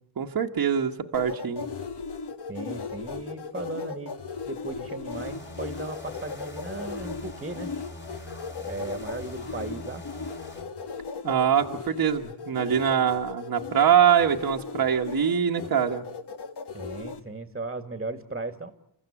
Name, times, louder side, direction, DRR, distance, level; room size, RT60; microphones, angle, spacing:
voice 1, 0.2-1.6 11.2-16.0, right 8 dB, 45° right, 2 dB, 1.4 m, -23 dB
sound 1, 1.1-17.2, left 5 dB, 50° left, 1.9 m, -37 dB
voice 2, 2.5-4.2 4.5-7.7 8.7-10.0 16.7-18.7, right 3 dB, 15° right, 9 dB, 1.9 m, -36 dB
sound 2, 5.1-10.6, left 2 dB, 20° left, 2.9 m, -43 dB
28.5 x 14.5 x 9.9 m, 0.80 s
cardioid pair, 80°, 50 cm